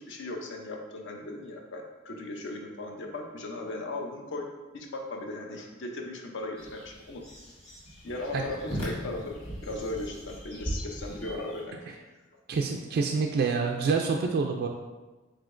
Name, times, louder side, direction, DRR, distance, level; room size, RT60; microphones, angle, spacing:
voice 1, 0.1-4.5 4.7-7.2 8.0-9.4 9.6-11.8, left 2 dB, 60° left, 2 dB, 0.6 m, -37 dB
sound 1, 6.6-11.6, equal, 30° left, 1.4 m, -39 dB
voice 2, 12.5-14.7, right 4 dB, 50° right, 2 dB, 0.3 m, -27 dB
4.9 x 3.7 x 2.5 m, 1.2 s
head